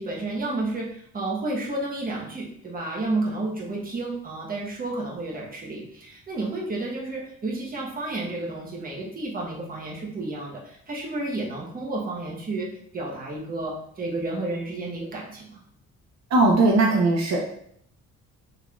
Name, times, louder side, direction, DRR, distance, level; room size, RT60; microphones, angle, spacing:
voice 1, 0.0-15.6, right 2 dB, 30° right, -2 dB, 1.1 m, -31 dB
voice 2, 16.3-17.4, right 2 dB, 60° right, -1 dB, 0.8 m, -19 dB
3.7 x 3.3 x 2.4 m, 0.67 s
cardioid pair, 90°, 30 cm